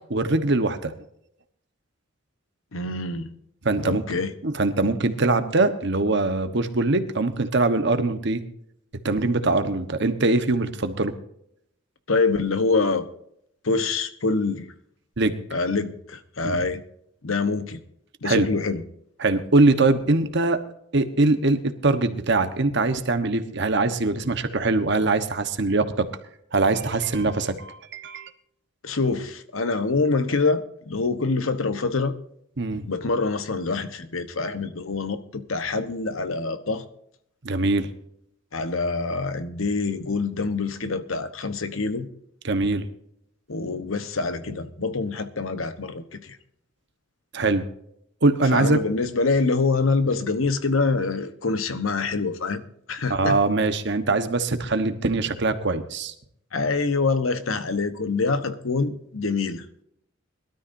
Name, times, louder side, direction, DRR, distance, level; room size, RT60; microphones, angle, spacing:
voice 1, 0.1-0.9 3.6-4.0 4.4-8.4 9.0-11.1 15.2-15.3 16.4-16.6 18.2-18.5 19.2-20.6 20.9-26.1 26.5-28.3 32.6-32.8 37.4-37.9 42.4-42.8 47.3-47.6 48.2-48.8 53.1-56.1, right 2 dB, 60° right, 9 dB, 1.2 m, -22 dB
voice 2, 2.7-3.3 3.8-4.3 12.1-13.1 13.6-14.7 15.5-16.8 17.2-17.8 18.2-18.8 28.8-32.1 32.9-36.8 38.5-42.1 43.5-46.4 48.5-53.4 56.5-59.6, left 3 dB, 85° left, 10 dB, 1.1 m, -25 dB
22.0 x 13.0 x 2.7 m, 0.73 s
head